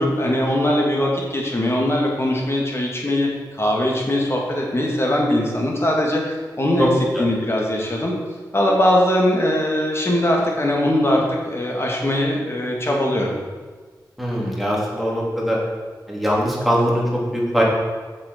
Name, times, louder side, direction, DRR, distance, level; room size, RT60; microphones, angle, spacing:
voice 1, 0.0-3.3 3.6-6.9 7.2-8.1 8.5-13.3, left 1 dB, 35° left, -1 dB, 2.5 m, -21 dB
voice 2, 14.2-15.6 16.1-17.6, equal, ahead, -4 dB, 2.9 m, -21 dB
7.0 x 6.9 x 6.1 m, 1.4 s
cardioid pair, 50°, 8 cm